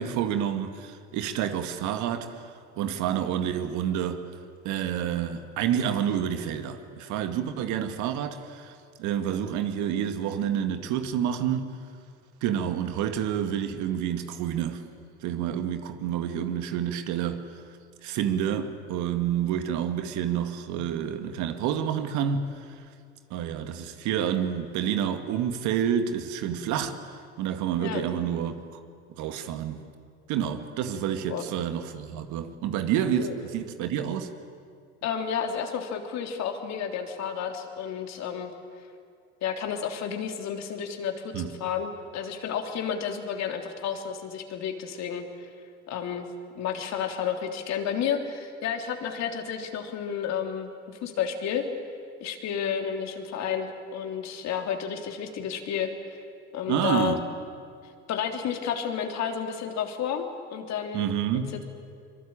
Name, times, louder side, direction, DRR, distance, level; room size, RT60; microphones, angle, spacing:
voice 1, 0.0-2.4 2.8-4.3 4.6-11.7 12.4-14.8 15.2-17.5 18.0-22.6 23.3-28.6 29.1-29.8 30.3-34.3 41.3-41.5 56.7-57.3 60.9-61.5, right 9 dB, 60° right, 2.1 m, -29 dB
voice 2, 35.0-38.5 39.4-45.5 45.9-46.3 46.5-51.6 52.2-56.2 56.5-57.2 58.1-60.2 60.5-61.6, left 8 dB, 55° left, 3.4 m, -31 dB
25.0 x 23.5 x 8.8 m
hypercardioid pair, 70°, 32 cm